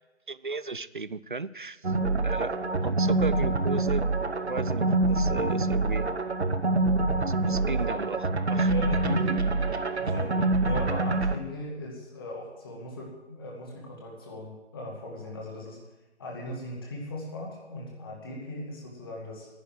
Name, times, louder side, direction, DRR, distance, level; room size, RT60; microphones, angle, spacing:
voice 1, 0.3-1.9 2.2-2.6 2.8-4.1 4.5-6.1 7.5-8.7, right 3 dB, 50° right, 18 dB, 0.4 m, -35 dB
sound 1, 1.8-11.4, right 2 dB, 70° right, 1.0 m, -26 dB
voice 2, 8.5-9.4 10.0-15.8 16.2-19.5, left 1 dB, 20° left, -2 dB, 2.2 m, -38 dB
10.5 x 9.7 x 7.8 m, 1.1 s
figure-of-eight pair, 155°, 34 cm